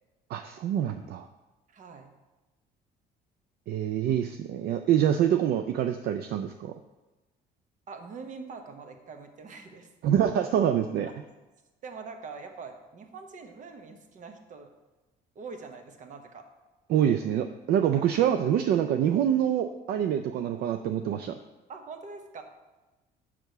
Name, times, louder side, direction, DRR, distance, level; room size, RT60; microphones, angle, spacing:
voice 1, 0.3-1.3 3.7-6.7 10.0-11.1 16.9-21.4, right 10 dB, 70° right, 8 dB, 0.4 m, -26 dB
voice 2, 1.7-2.1 7.9-9.9 10.4-10.5 11.8-14.7 15.3-16.4 21.7-22.4, right 4 dB, 50° right, 6 dB, 1.0 m, -43 dB
5.9 x 4.6 x 6.5 m, 1.1 s
cardioid pair, 110°, 17 cm